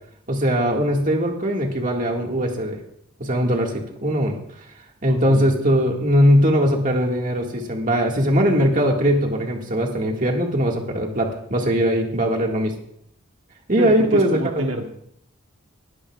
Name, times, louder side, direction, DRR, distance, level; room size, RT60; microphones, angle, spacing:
voice 1, 0.3-2.8 3.2-4.4 5.0-12.8 13.7-14.6, equal, 40° right, 1 dB, 1.9 m, -20 dB
voice 2, 5.1-5.5 13.8-14.9, right 2 dB, 80° right, 3 dB, 1.2 m, -28 dB
20.0 x 12.5 x 2.4 m, 0.70 s
head